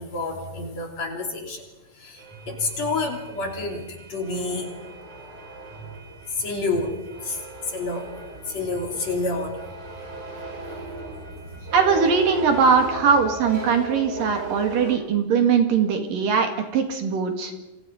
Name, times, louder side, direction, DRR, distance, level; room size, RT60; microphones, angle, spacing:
voice 1, 0.0-1.6 1.9-4.9 5.8-6.0 6.3-8.1 8.4-9.6, left 3 dB, 45° left, 2 dB, 4.2 m, -29 dB
sound 1, 2.2-15.0, right 2 dB, 30° right, 3.9 m, -37 dB
voice 2, 11.7-17.5, right 6 dB, 65° right, 5 dB, 3.8 m, -21 dB
29.5 x 25.5 x 5.4 m, 1.0 s
omnidirectional pair, 4.4 m